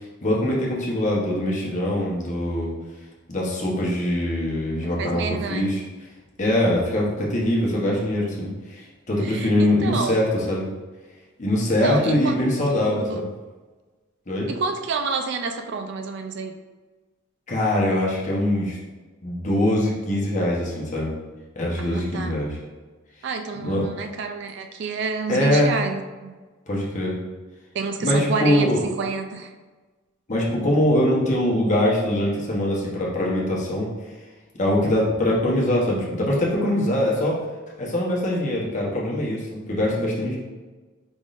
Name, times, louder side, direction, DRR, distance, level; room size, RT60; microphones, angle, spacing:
voice 1, 0.2-2.7 3.3-5.8 6.4-10.7 11.4-13.3 14.3-14.5 17.5-18.8 19.2-21.1 21.6-22.6 23.6-23.8 25.3-25.7 26.7-27.2 28.0-28.8 30.3-33.9 34.5-37.4 37.8-40.4, left 1 dB, 35° left, -3 dB, 1.0 m, -23 dB
voice 2, 4.8-5.7 9.2-10.2 11.8-12.3 12.7-13.3 14.5-16.6 21.8-22.4 23.2-26.3 27.7-29.5, right 5 dB, 55° right, 6 dB, 0.3 m, -29 dB
5.1 x 3.6 x 2.5 m, 1.3 s
head